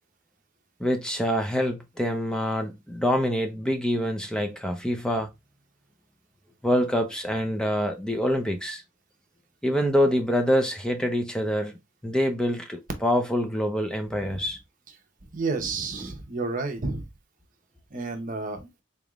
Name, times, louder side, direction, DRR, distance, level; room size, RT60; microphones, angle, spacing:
voice 1, 0.8-5.3 6.6-8.8 9.6-11.7 12.0-14.6, equal, 5° left, 0.5 m, -25 dB
voice 2, 15.3-17.0 17.9-18.6, right 3 dB, 40° right, 0.8 m, -30 dB
4.0 x 3.4 x 2.4 m
head